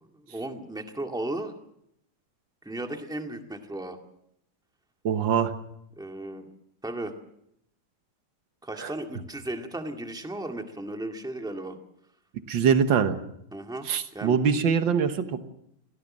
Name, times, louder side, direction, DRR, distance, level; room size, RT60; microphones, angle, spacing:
voice 1, 0.0-1.5 2.6-4.0 6.0-6.5 6.8-7.1 8.6-11.8 13.5-14.4, right 1 dB, ahead, 4 dB, 1.8 m, -35 dB
voice 2, 5.1-5.5 8.8-8.9 12.5-13.2 13.9-15.4, right 7 dB, 90° right, 9 dB, 2.0 m, -23 dB
24.0 x 17.5 x 7.5 m, 0.75 s
omnidirectional pair, 2.0 m